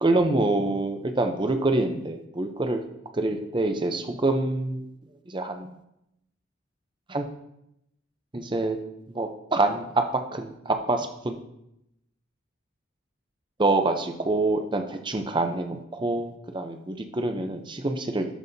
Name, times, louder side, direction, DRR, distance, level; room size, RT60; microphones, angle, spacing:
voice 1, 0.0-2.8 3.1-4.8 5.3-5.7 7.1-7.2 8.3-8.8 9.1-10.0 10.3-11.4 13.6-18.3, right 2 dB, 25° right, 6 dB, 0.6 m, -26 dB
12.0 x 5.5 x 2.7 m, 0.82 s
head